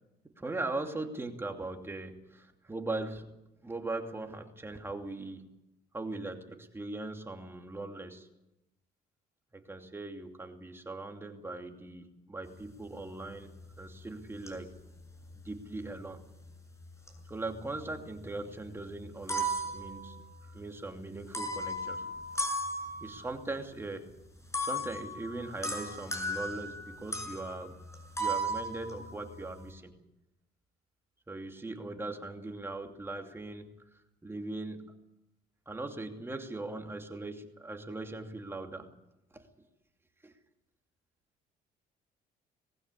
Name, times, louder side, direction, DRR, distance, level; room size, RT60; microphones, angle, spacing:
voice 1, 0.2-5.5 5.9-8.3 9.5-14.7 15.4-16.3 17.3-22.2 23.0-24.1 24.6-27.8 28.2-29.9 31.3-35.0 35.7-38.9 39.3-39.5 40.2-40.3, right 2 dB, 15° right, 4 dB, 2.7 m, -40 dB
sound 1, 13.5-13.9 14.5-15.9 16.8-18.0 18.3-18.4 19.0-20.6 21.2-23.3 24.5-29.7, right 1 dB, 15° left, 6.5 m, -36 dB
20.0 x 15.5 x 9.9 m, 0.91 s
cardioid pair, 110°, 17 cm